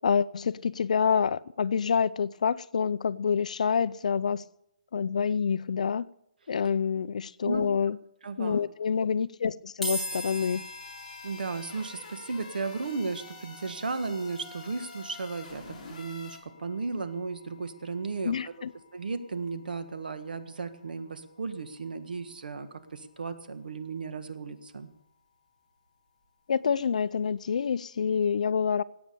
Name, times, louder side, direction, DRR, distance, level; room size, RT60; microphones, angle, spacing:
voice 1, 0.0-4.4 4.9-6.1 6.5-8.0 8.4-10.6 18.2-18.7 26.5-28.8, left 6 dB, 55° left, 0.5 m, -27 dB
voice 2, 8.2-8.6 11.2-18.4 18.9-24.9, right 4 dB, 90° right, 1.7 m, -35 dB
sound 1, 9.8-23.1, equal, ahead, 1.8 m, -44 dB
sound 2, 9.9-16.4, left 3 dB, 30° left, 4.4 m, -48 dB
19.0 x 8.8 x 6.9 m
hypercardioid pair, 180°, 5 cm